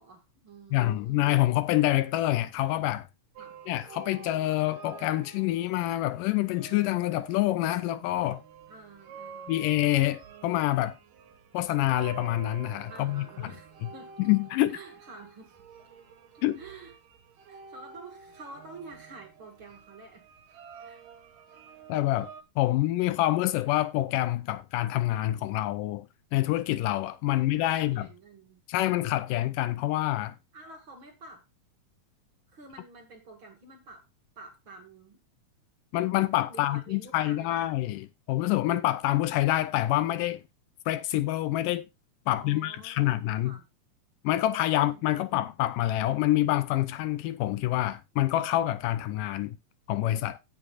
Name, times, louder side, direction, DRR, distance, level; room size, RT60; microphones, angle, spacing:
voice 1, 0.0-1.3 3.4-3.6 8.7-9.5 12.9-14.1 14.7-15.9 16.3-16.9 17.5-20.2 20.8-21.0 27.3-27.5 27.7-28.6 30.5-31.4 32.5-34.1 34.4-35.2 36.5-37.9 42.3-43.7 44.7-45.5, right 3 dB, 40° right, 2.7 m, -49 dB
voice 2, 0.7-3.1 3.7-8.4 9.5-11.0 11.5-13.5 14.2-14.8 16.4-16.6 21.9-26.1 26.3-28.1 28.7-30.4 35.9-40.4 40.9-41.9 42.3-43.6 44.2-49.6 49.9-50.4, left 15 dB, 80° left, 2.2 m, -27 dB
sound 1, 3.4-22.4, right 7 dB, 75° right, 2.9 m, -49 dB
17.0 x 6.9 x 2.4 m
omnidirectional pair, 3.9 m